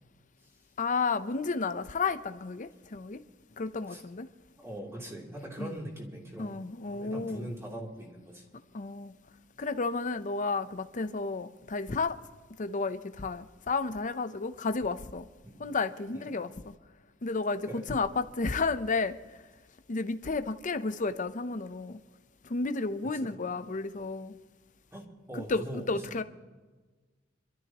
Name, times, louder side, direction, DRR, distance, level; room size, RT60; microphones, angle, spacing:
voice 1, 0.8-3.2 3.6-4.3 5.6-5.8 6.4-7.5 8.7-9.1 9.6-12.2 12.6-15.2 15.6-16.5 17.2-19.2 19.9-22.0 22.4-24.4 25.3-26.2, left 4 dB, 40° left, 0.7 m, -32 dB
voice 2, 4.6-6.6 6.9-8.4 15.4-15.7 16.1-16.2 17.6-17.9 23.0-23.4 24.9-26.2, right 1 dB, 15° right, 3.1 m, -42 dB
26.0 x 13.0 x 3.0 m
head